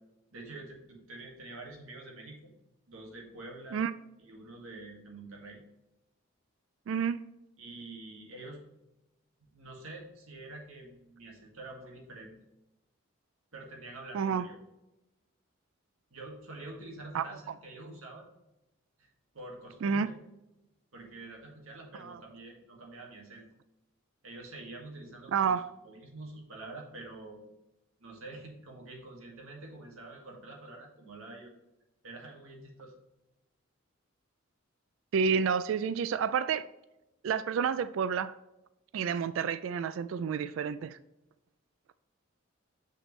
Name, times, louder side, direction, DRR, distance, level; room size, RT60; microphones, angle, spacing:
voice 1, 0.3-2.5 2.9-3.8 4.2-5.6 7.6-8.6 9.4-12.3 13.5-14.6 16.1-18.3 19.0-19.1 19.3-20.1 20.9-23.5 24.2-27.4 28.0-31.5 32.0-32.9, right 2 dB, 90° right, 1.9 m, -47 dB
voice 2, 6.9-7.3 14.1-14.5 17.1-17.2 19.8-20.1 22.0-22.2 25.3-25.7 35.1-36.7 37.2-38.4 38.9-41.0, right 6 dB, 70° right, 0.3 m, -29 dB
6.7 x 6.0 x 3.1 m
head